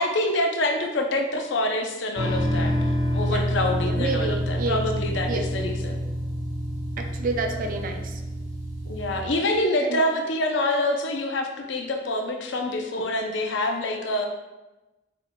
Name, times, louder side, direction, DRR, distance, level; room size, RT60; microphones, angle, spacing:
voice 1, 0.0-2.7 3.1-6.0 8.9-14.3, left 1 dB, 65° left, 4 dB, 0.6 m, -26 dB
sound 1, 2.2-9.2, equal, 80° right, 1.1 m, -27 dB
voice 2, 3.8-4.8 5.3-5.5 7.0-8.2 9.8-10.0, right 3 dB, 45° right, 4 dB, 0.5 m, -29 dB
5.6 x 3.6 x 2.2 m, 1.1 s
head